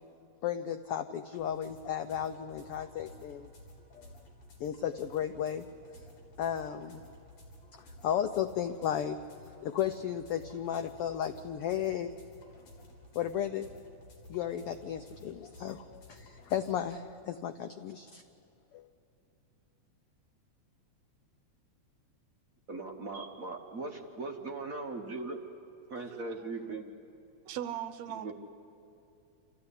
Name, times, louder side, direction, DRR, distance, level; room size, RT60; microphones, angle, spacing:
voice 1, 0.4-3.5 3.9-4.1 4.6-5.7 6.4-7.0 8.0-9.2 9.6-12.2 13.1-13.7 14.3-18.2 18.7-18.9, left 9 dB, 85° left, 1.2 m, -34 dB
sound 1, 1.4-16.7, left 1 dB, 65° left, 5.1 m, -54 dB
voice 2, 22.7-25.4 25.9-26.8 28.2-28.3, right 3 dB, 50° right, 1.0 m, -39 dB
voice 3, 27.5-28.3, right 10 dB, 75° right, 2.0 m, -38 dB
27.5 x 14.5 x 9.8 m
omnidirectional pair, 3.3 m